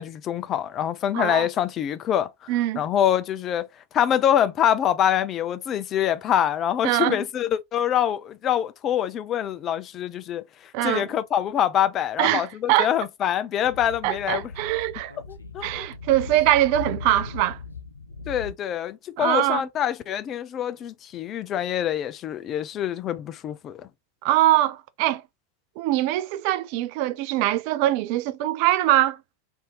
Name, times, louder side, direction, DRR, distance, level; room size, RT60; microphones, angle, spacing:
voice 1, 0.0-2.3 2.8-3.7 3.9-10.4 10.8-14.4 15.3-15.9 18.3-23.9, left 10 dB, 30° left, 0.4 m, -25 dB
voice 2, 1.1-1.5 2.5-2.8 6.8-7.2 10.7-11.1 12.2-12.9 14.0-15.1 15.6-17.6 19.2-19.6 24.2-25.2 25.8-29.2, right 14 dB, 45° right, 0.4 m, -22 dB
Speech / Wind, 13.6-18.5, left 4 dB, 80° left, 0.5 m, -38 dB
3.5 x 2.7 x 3.0 m
figure-of-eight pair, 90°, 0 cm